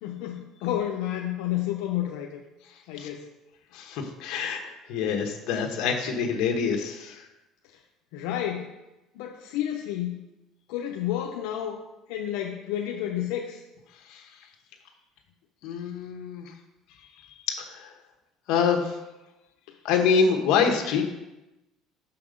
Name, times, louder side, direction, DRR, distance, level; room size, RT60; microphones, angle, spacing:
voice 1, 0.0-2.4 2.9-3.3 8.1-8.7 9.1-10.2 10.7-11.8 12.1-13.6 19.7-19.8, left 11 dB, 90° left, 1 dB, 0.7 m, -30 dB
voice 2, 3.7-4.6 4.9-7.2 14.1-14.2 15.6-16.5 17.5-17.9 18.5-19.0 19.8-21.0, left 6 dB, 65° left, 3 dB, 1.4 m, -25 dB
6.7 x 5.8 x 5.1 m, 0.99 s
cardioid pair, 145°, 0 cm